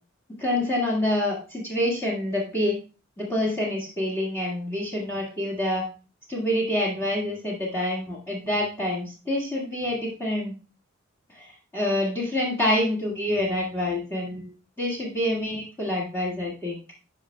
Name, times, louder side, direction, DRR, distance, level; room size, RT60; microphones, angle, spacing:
voice 1, 0.4-2.8 3.2-5.8 6.3-10.5 11.3-14.5 14.8-16.8, left 1 dB, 10° left, -6 dB, 1.9 m, -27 dB
11.5 x 5.0 x 2.3 m, 0.34 s
head